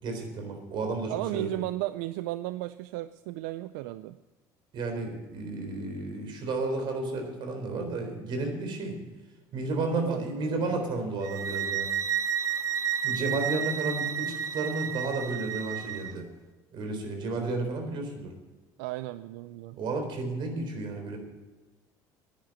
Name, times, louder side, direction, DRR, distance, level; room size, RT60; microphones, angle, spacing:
voice 1, 0.0-1.5 4.7-9.0 9.5-11.9 13.0-16.3 16.7-18.3 19.7-21.2, right 3 dB, 55° right, 4 dB, 3.8 m, -32 dB
voice 2, 1.1-4.2 9.7-10.7 18.8-19.8, right 16 dB, 85° right, 14 dB, 0.4 m, -35 dB
sound 1, 11.2-16.1, right 8 dB, 35° right, 0.7 m, -31 dB
10.5 x 10.5 x 7.6 m, 1.2 s
supercardioid pair, 95°, 9 cm